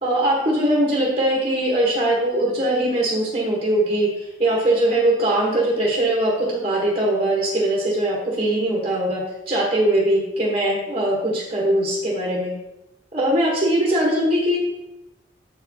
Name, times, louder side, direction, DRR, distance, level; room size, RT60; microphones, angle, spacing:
voice 1, 0.0-4.1 4.4-12.5 13.1-14.6, right 1 dB, 30° right, -4 dB, 1.4 m, -21 dB
7.2 x 4.5 x 3.6 m, 0.90 s
head